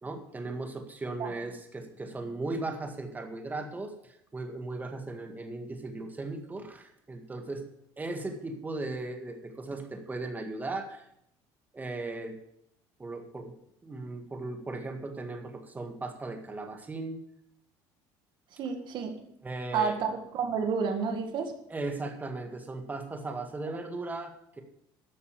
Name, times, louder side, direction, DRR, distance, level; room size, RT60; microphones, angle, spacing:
voice 1, 0.0-7.6 8.0-11.1 11.7-12.4 13.0-13.5 13.8-17.2 19.4-20.0 21.7-24.6, right 2 dB, 20° right, 5 dB, 1.9 m, -37 dB
voice 2, 18.6-19.1 19.7-21.5, right 5 dB, 55° right, 5 dB, 2.1 m, -30 dB
12.5 x 6.9 x 6.7 m, 0.77 s
cardioid pair, 105°, 9 cm